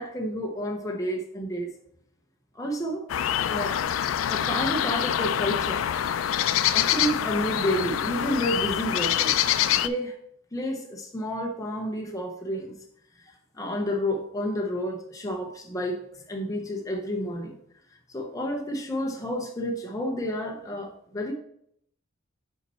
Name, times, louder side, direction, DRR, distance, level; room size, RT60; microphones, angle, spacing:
voice 1, 0.0-1.7 2.5-3.0 3.5-3.8 4.3-5.9 6.7-9.4 9.8-10.2 10.5-12.7 13.2-17.6 18.1-21.3, equal, 15° left, 1 dB, 0.7 m, -30 dB
sound 1, 3.1-9.9, left 10 dB, 75° left, 0.3 m, -25 dB
5.7 x 4.4 x 4.1 m, 0.69 s
head